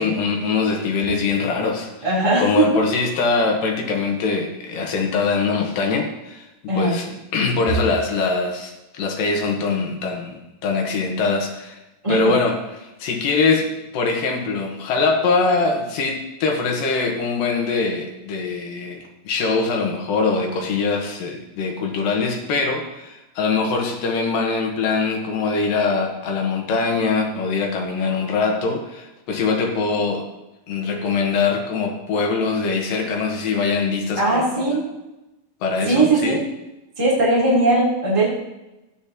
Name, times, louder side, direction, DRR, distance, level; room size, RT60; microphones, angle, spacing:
voice 1, 0.0-6.5 6.7-11.8 12.1-13.7 13.9-30.2 30.7-34.8 35.6-36.4, left 4 dB, 75° left, 1 dB, 2.9 m, -23 dB
voice 2, 2.0-2.8 6.7-7.0 12.0-12.3 34.2-34.8 35.8-36.4 37.0-38.3, right 2 dB, 10° right, -7 dB, 3.3 m, -19 dB
13.5 x 10.0 x 3.0 m, 0.99 s
omnidirectional pair, 4.2 m